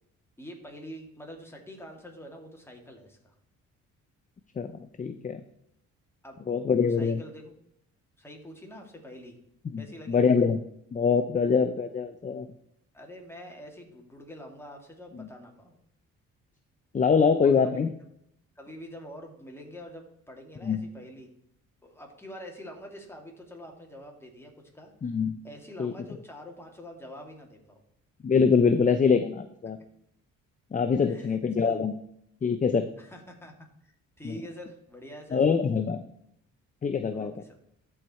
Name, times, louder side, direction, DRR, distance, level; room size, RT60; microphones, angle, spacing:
voice 1, 0.4-3.3 6.2-6.4 6.8-7.5 8.2-9.3 9.8-10.2 12.9-15.8 17.4-17.8 18.6-21.3 21.8-24.9 25.4-27.8 31.1-31.8 33.0-33.5 33.8-35.4 37.1-37.6, equal, 10° left, 1 dB, 2.4 m, -45 dB
voice 2, 4.6-5.4 6.5-7.2 9.7-9.8 10.1-10.6 10.9-12.5 15.2-15.3 16.9-17.9 20.6-20.8 25.0-25.4 25.8-25.9 28.2-29.8 30.7-31.9 32.4-32.9 34.2-34.3 35.3-36.0 36.8-37.3, left 5 dB, 25° left, 9 dB, 0.6 m, -24 dB
13.5 x 4.8 x 4.3 m, 0.73 s
cardioid pair, 90°, 30 cm